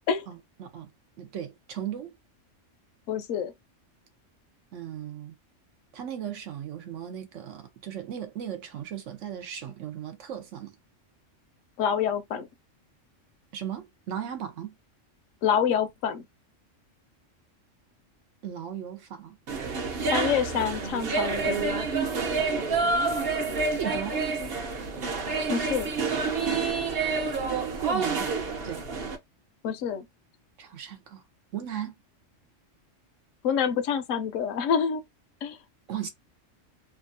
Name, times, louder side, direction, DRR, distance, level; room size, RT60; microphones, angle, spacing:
voice 1, 0.3-0.9 1.2-2.2 4.7-5.4 5.9-10.7 13.5-14.7 18.4-19.4 22.7-23.2 23.7-24.2 27.8-28.3 28.6-28.8 30.6-31.2 31.5-32.0 35.9-36.1, right 10 dB, 75° right, 1.0 m, -37 dB
voice 2, 3.1-3.5 11.8-12.5 15.4-16.3 20.1-21.7 25.5-25.9 29.6-30.1 33.4-35.0 35.4-35.6, left 7 dB, 80° left, 0.9 m, -27 dB
sound 1, 19.5-29.2, right 4 dB, 55° right, 0.9 m, -28 dB
2.8 x 2.3 x 2.6 m
omnidirectional pair, 1.3 m